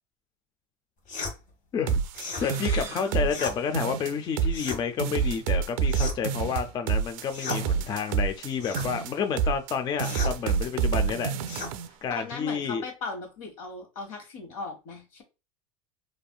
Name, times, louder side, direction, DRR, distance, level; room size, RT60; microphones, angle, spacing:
sound 1, 1.1-1.4 2.1-2.5 3.3-3.6 4.5-4.8 5.9-6.3 7.3-7.6 8.6-8.9 10.0-10.4 11.5-11.7, left 3 dB, 50° left, 1.4 m, -35 dB
sound 2, 1.9-3.5 3.7-4.7 5.0-8.5 8.7-9.7 10.0-11.9, right 6 dB, 75° right, 0.4 m, -28 dB
sound 3, 2.1-4.8, right 3 dB, 15° right, 0.7 m, -46 dB
voice 1, 2.4-11.3 12.0-12.9, left 6 dB, 25° left, 0.3 m, -30 dB
voice 2, 3.0-3.3 11.9-15.2, left 4 dB, 80° left, 1.5 m, -38 dB
3.3 x 2.5 x 2.2 m
supercardioid pair, 125°, 17 cm